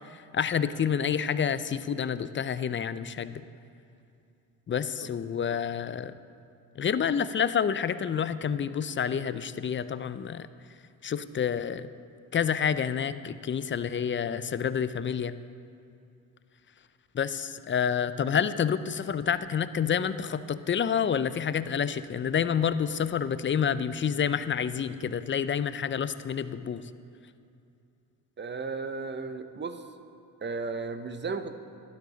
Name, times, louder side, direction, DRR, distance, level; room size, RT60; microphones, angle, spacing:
voice 1, 0.1-3.4 4.7-6.1 6.8-10.5 11.0-11.9 12.3-15.3 17.1-26.8, left 7 dB, 30° left, 14 dB, 0.5 m, -28 dB
voice 2, 28.4-29.8 30.4-31.6, right 4 dB, 30° right, 9 dB, 0.8 m, -34 dB
12.0 x 12.0 x 4.0 m, 2.6 s
cardioid pair, 75°, 39 cm